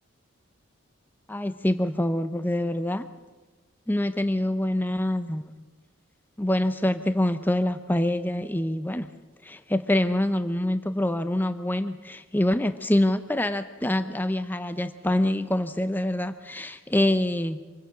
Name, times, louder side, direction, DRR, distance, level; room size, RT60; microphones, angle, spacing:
voice 1, 1.3-3.1 3.9-5.5 6.4-9.1 9.4-17.6, left 1 dB, 10° left, 11 dB, 0.6 m, -25 dB
25.0 x 17.0 x 6.1 m, 1.3 s
head